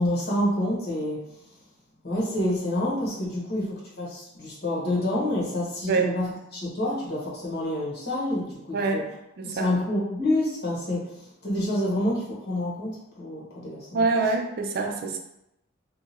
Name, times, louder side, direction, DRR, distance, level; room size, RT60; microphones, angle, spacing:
voice 1, 0.0-1.5 2.0-9.1 9.4-14.0 14.8-14.9, left 1 dB, 50° left, -5 dB, 1.1 m, -28 dB
voice 2, 8.7-9.1 9.4-9.7 13.9-15.2, right 3 dB, 50° right, 2 dB, 0.4 m, -25 dB
2.8 x 2.4 x 4.1 m, 0.84 s
head